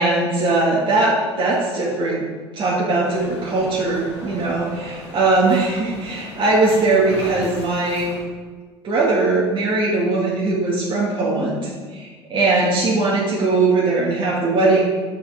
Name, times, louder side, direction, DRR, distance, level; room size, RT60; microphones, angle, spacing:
voice 1, 0.0-2.2 2.6-4.6 5.1-8.1 8.8-14.8, right 3 dB, 35° right, -6 dB, 2.7 m, -20 dB
sound 1, 3.0-8.2, left 1 dB, 90° left, 2.9 m, -37 dB
11.0 x 7.2 x 5.2 m, 1.4 s
hypercardioid pair, 75°, 14 cm